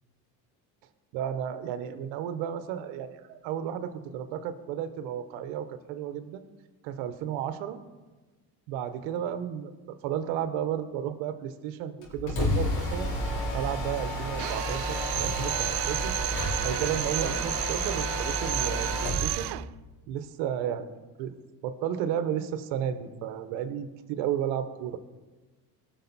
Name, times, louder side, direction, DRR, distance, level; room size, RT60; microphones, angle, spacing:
voice 1, 1.1-6.4 6.8-7.8 8.7-13.1 13.5-16.2 16.6-19.6 20.1-20.9 21.2-21.3 21.6-25.0, right 9 dB, 85° right, 10 dB, 1.0 m, -33 dB
Mechanisms, 12.0-19.3, equal, 85° left, 4.2 m, -31 dB
Drill, 14.4-19.7, right 18 dB, 60° right, 0.5 m, -32 dB
18.5 x 6.4 x 4.1 m, 1.2 s
supercardioid pair, 80°, 44 cm